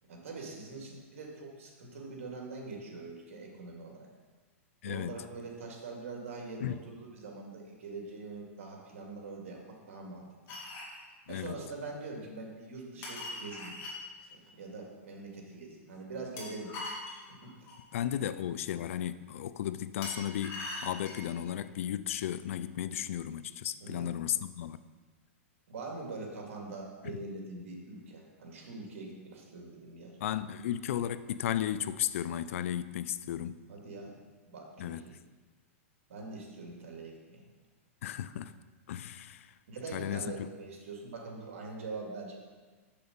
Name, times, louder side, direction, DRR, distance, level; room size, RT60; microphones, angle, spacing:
voice 1, 0.0-4.1 4.8-10.5 11.3-13.8 14.2-16.7 17.3-17.7 23.8-24.1 25.7-30.2 33.7-34.1 34.5-35.1 36.1-37.4 39.7-42.4, right 3 dB, 80° right, -1 dB, 2.3 m, -43 dB
voice 2, 4.8-5.1 6.6-6.8 11.3-11.5 17.9-24.8 27.0-27.2 30.2-33.6 34.8-35.0 38.0-38.5 38.9-39.5 39.9-40.5, left 11 dB, 70° left, 14 dB, 0.4 m, -35 dB
sound 1, 10.5-11.0 13.0-14.0 16.4-17.8 20.0-21.3, left 2 dB, 35° left, 2.5 m, -41 dB
6.8 x 6.7 x 5.3 m, 1.3 s
hypercardioid pair, 145°, 7 cm